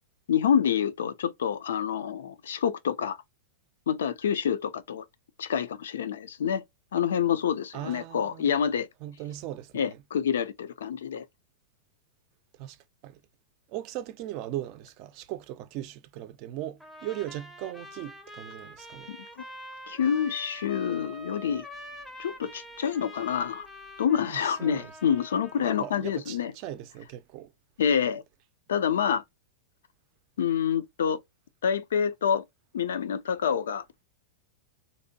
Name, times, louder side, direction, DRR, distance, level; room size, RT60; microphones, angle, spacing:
voice 1, 0.3-3.2 3.9-5.0 5.4-6.6 6.9-8.9 9.7-11.3 19.1-19.4 19.9-21.7 22.2-23.7 24.0-26.5 27.8-28.2 28.7-29.2 30.4-31.2 31.6-32.4 32.7-33.8, left 8 dB, 85° left, 0.4 m, -27 dB
voice 2, 7.7-8.5 9.0-10.0 12.6-12.8 13.0-13.2 13.7-19.1 24.3-24.9 25.6-27.5, right 13 dB, 45° right, 0.4 m, -38 dB
Trumpet, 16.8-25.9, equal, 5° left, 0.5 m, -45 dB
2.7 x 2.1 x 2.7 m
hypercardioid pair, 125°, 0 cm